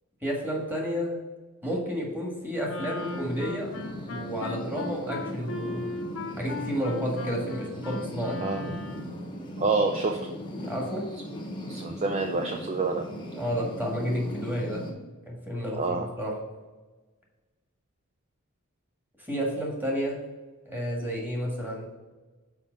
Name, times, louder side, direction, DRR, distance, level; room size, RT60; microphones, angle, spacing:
voice 1, 0.2-1.1 1.6-3.7 4.1-5.8 6.4-8.4 10.6-11.0 13.3-14.8 15.3-16.3 19.2-20.2 20.7-21.8, equal, 10° right, -2 dB, 1.8 m, -31 dB
Wind instrument woodwind instrument, 2.6-9.3, left 3 dB, 70° left, 0.9 m, -38 dB
sound 1, 3.0-14.9, equal, 20° left, 0.9 m, -38 dB
voice 2, 9.6-10.3 11.7-13.1 15.8-16.1, right 3 dB, 30° right, 3 dB, 0.5 m, -27 dB
6.0 x 4.9 x 5.2 m, 1.3 s
head